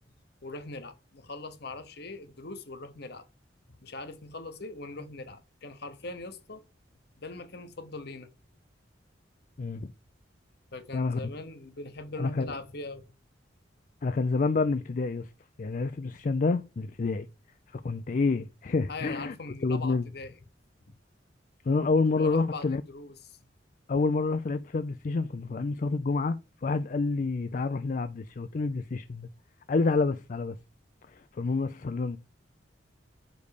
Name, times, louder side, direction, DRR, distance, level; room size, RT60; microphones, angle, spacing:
voice 1, 0.4-3.2 3.8-6.6 7.2-8.3 10.7-13.0 18.9-20.4 22.2-23.4, left 2 dB, 60° left, 1.1 m, -41 dB
voice 2, 9.6-9.9 10.9-11.3 12.2-12.5 14.0-15.3 15.6-17.3 17.7-19.3 19.6-20.1 21.6-22.8 23.9-29.3 29.7-30.6 31.1-32.2, left 3 dB, 45° left, 0.4 m, -28 dB
5.3 x 5.3 x 6.4 m
head